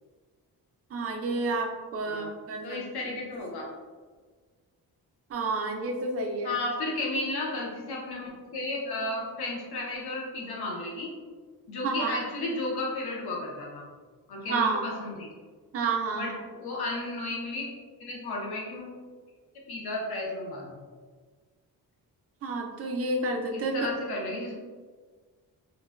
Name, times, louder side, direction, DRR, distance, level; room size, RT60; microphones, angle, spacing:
voice 1, 0.9-2.8 3.0-3.1 5.3-6.6 11.8-12.2 14.5-14.9 15.7-16.3 22.4-23.9, right 3 dB, 40° right, 2 dB, 0.4 m, -30 dB
voice 2, 2.6-3.7 6.4-11.1 11.7-13.9 14.3-15.3 16.1-17.6 18.0-18.9 19.7-20.7 23.5-24.6, left 2 dB, 75° left, -2 dB, 0.7 m, -33 dB
3.8 x 2.1 x 2.3 m, 1.5 s
wide cardioid pair, 155°, 38 cm